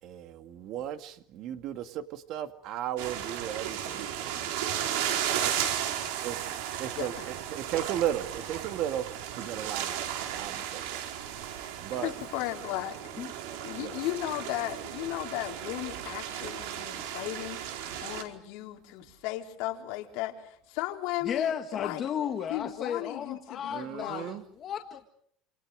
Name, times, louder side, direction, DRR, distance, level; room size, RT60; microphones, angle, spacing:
voice 1, 0.0-4.7 5.6-5.7 6.1-9.0 9.3-11.4 11.8-12.1 13.7-14.0 23.7-24.4, right 11 dB, 45° right, 9 dB, 2.3 m, -36 dB
sound 1, 3.0-18.2, right 10 dB, 85° right, 4.8 m, -35 dB
voice 2, 11.5-13.0 13.6-22.0 22.5-24.3, left 16 dB, 65° left, 3 dB, 4.2 m, -36 dB
voice 3, 21.2-25.1, left 8 dB, 30° left, 5 dB, 1.8 m, -34 dB
29.5 x 28.0 x 5.1 m, 0.66 s
cardioid pair, 165°, 0 cm